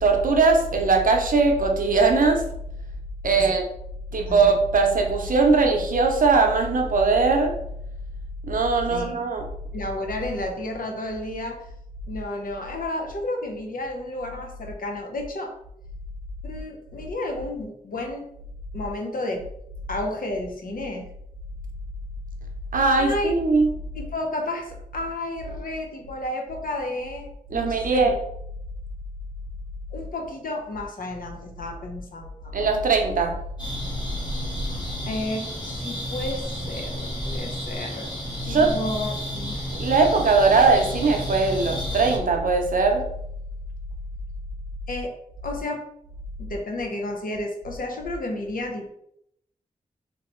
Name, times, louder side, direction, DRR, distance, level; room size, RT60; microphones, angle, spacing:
voice 1, 0.0-2.4 3.2-3.6 4.1-7.5 8.5-9.4 22.7-23.7 27.5-28.2 32.5-33.4 38.4-38.7 39.7-43.1, right 4 dB, 65° right, 3 dB, 0.6 m, -20 dB
voice 2, 8.9-9.2 9.7-11.7 12.1-15.5 16.4-18.3 18.7-19.4 19.9-21.1 23.0-23.3 23.9-28.1 29.9-32.6 35.1-38.1 38.4-39.7 44.9-45.1 45.4-45.8 46.4-48.9, left 1 dB, 70° left, 2 dB, 0.7 m, -32 dB
sound 1, 33.6-42.2, equal, 30° left, 1.3 m, -32 dB
3.2 x 2.9 x 3.0 m, 0.75 s
wide cardioid pair, 75°, 15 cm